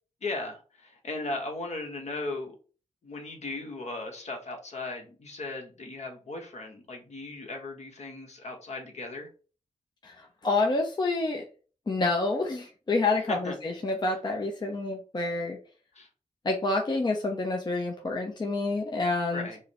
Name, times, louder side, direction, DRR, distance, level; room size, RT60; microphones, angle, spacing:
voice 1, 0.2-2.5 3.0-9.3 13.3-13.6 15.9-16.1 19.3-19.6, left 2 dB, 55° left, 2 dB, 1.1 m, -37 dB
voice 2, 10.0-11.4 11.9-15.6 16.4-19.5, left 3 dB, 35° left, 1 dB, 0.6 m, -28 dB
4.7 x 2.1 x 2.9 m, 0.37 s
cardioid pair, 80°, 13 cm